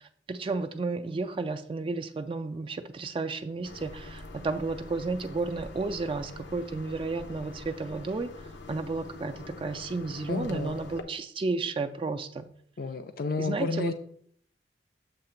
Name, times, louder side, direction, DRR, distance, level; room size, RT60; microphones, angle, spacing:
voice 1, 0.3-8.3 8.7-12.4 13.4-13.9, right 3 dB, 30° right, 7 dB, 0.3 m, -32 dB
sound 1, 3.6-11.0, left 2 dB, 80° left, 0.7 m, -45 dB
voice 2, 10.3-10.8 12.8-13.9, left 3 dB, 55° left, 8 dB, 0.4 m, -31 dB
7.5 x 2.8 x 5.7 m, 0.62 s
head